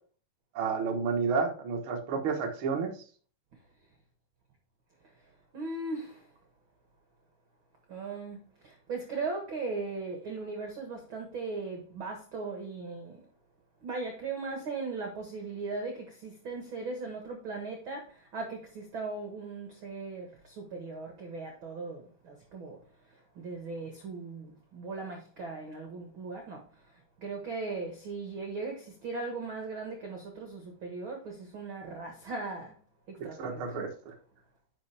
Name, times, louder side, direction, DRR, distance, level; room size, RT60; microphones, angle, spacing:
voice 1, 0.5-2.9 33.4-34.1, right 5 dB, 90° right, 1.1 m, -30 dB
voice 2, 5.5-6.3 7.9-13.3 13.8-32.8 33.1-33.6, right 3 dB, 55° right, 1.4 m, -38 dB
10.5 x 5.8 x 3.4 m
omnidirectional pair, 4.5 m